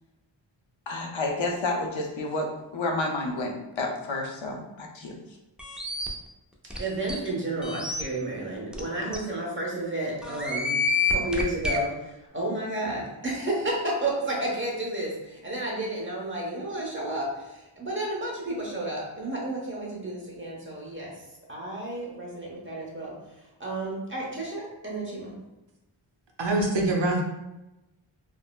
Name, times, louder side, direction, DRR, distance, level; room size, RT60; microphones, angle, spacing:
voice 1, 0.9-2.5 2.7-5.1, left 2 dB, 85° left, 1 dB, 0.6 m, -30 dB
sound 1, 5.6-6.1 6.7-6.8 7.1-7.2 7.6-8.0 8.7-8.8 9.1-9.2 10.2-11.8, left 4 dB, ahead, 0.4 m, -28 dB
voice 2, 6.8-10.7 11.1-21.1 21.5-23.1 23.6-25.3, right 1 dB, 25° right, -3 dB, 0.9 m, -31 dB
voice 3, 26.4-27.2, right 2 dB, 70° right, 0 dB, 0.7 m, -24 dB
3.6 x 2.0 x 2.2 m, 0.96 s
wide cardioid pair, 45°, 46 cm